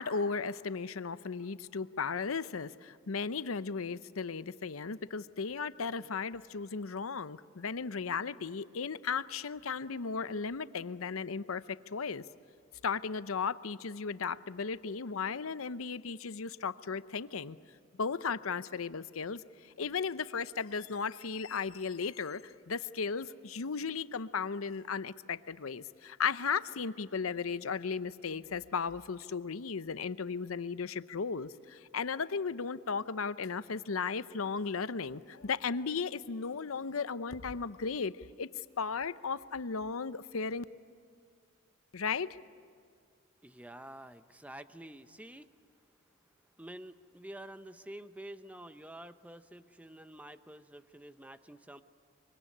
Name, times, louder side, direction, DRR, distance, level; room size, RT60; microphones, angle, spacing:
voice 1, 0.0-12.2 12.8-17.6 18.0-19.4 19.8-38.1 38.4-38.5 38.8-40.6 41.9-42.3, left 5 dB, 90° left, 14 dB, 0.7 m, -35 dB
voice 2, 43.4-45.5 46.6-51.8, right 1 dB, 5° right, 10 dB, 0.8 m, -48 dB
25.0 x 24.0 x 9.9 m, 2.1 s
head